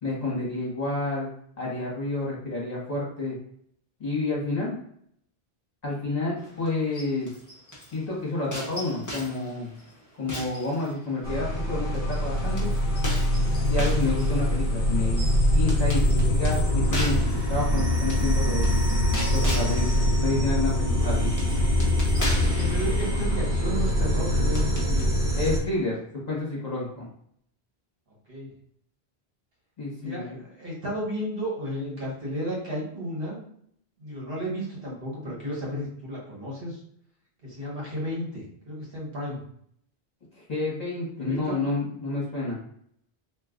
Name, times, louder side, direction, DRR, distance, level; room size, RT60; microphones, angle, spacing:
voice 1, 0.0-1.3 1.6-3.4 4.0-4.8 5.8-7.3 7.9-9.7 10.2-12.7 13.6-15.3 15.5-18.7 19.3-21.3 25.3-26.0 26.3-27.1 29.8-30.4 40.5-42.6, left 2 dB, 40° left, -5 dB, 1.1 m, -29 dB
sound 1, 6.4-8.0 8.5-11.4 11.9-25.0, equal, 20° left, 0.7 m, -39 dB
sound 2, 11.2-25.6, left 1 dB, 45° right, 1.2 m, -24 dB
voice 2, 22.4-25.1 28.3-28.5 30.0-33.4 34.0-36.8 37.4-39.4 41.2-41.7, equal, 60° right, -4 dB, 1.3 m, -33 dB
2.5 x 2.3 x 3.7 m, 0.67 s
omnidirectional pair, 1.1 m